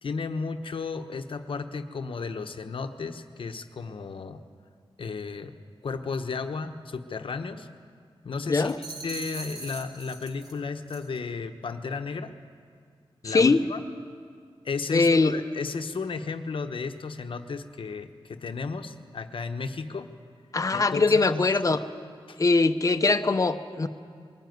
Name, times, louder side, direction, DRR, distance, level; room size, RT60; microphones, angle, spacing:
voice 1, 0.0-4.4 5.0-5.5 5.8-7.7 8.2-12.3 13.2-13.8 14.6-20.1 20.7-21.0 21.3-21.4 22.3-22.4, left 4 dB, 70° left, 7 dB, 1.0 m, -34 dB
sound 1, 8.6-10.6 10.9-11.2, right 3 dB, 45° right, 2.4 m, -41 dB
voice 2, 13.2-13.6 14.9-15.4 20.5-21.8 22.4-23.9, left 3 dB, 35° left, 8 dB, 0.9 m, -22 dB
22.0 x 17.0 x 9.4 m, 2.1 s
wide cardioid pair, 120°, 9 cm